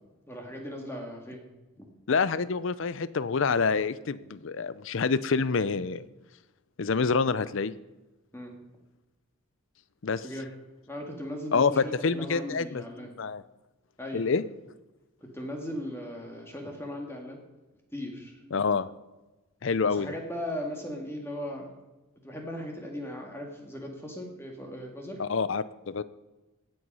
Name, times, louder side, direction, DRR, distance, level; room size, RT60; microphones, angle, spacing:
voice 1, 0.3-1.4 1.8-1.9 8.3-8.6 10.2-10.5 10.9-13.1 14.0-14.4 15.2-17.4 17.9-18.4 19.8-21.7 22.2-25.2, left 1 dB, 10° left, 1 dB, 1.9 m, -38 dB
voice 2, 2.1-6.0 6.8-7.7 10.0-10.2 11.5-13.4 14.1-14.4 18.5-18.9 19.6-20.1 25.2-26.0, left 5 dB, 60° left, 16 dB, 0.5 m, -27 dB
16.5 x 7.8 x 5.5 m, 1.1 s
head